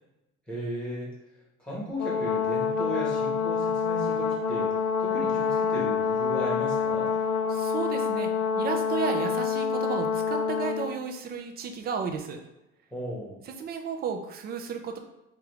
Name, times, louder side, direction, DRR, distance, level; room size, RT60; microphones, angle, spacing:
voice 1, 0.5-1.1 1.6-7.1 12.9-13.3, equal, 5° left, -5 dB, 1.1 m, -35 dB
Brass instrument, 2.0-10.9, left 6 dB, 80° left, 0.6 m, -27 dB
voice 2, 7.5-12.4 13.5-15.0, right 6 dB, 35° right, 4 dB, 0.4 m, -33 dB
5.0 x 2.4 x 3.0 m, 0.95 s
cardioid pair, 180°, 29 cm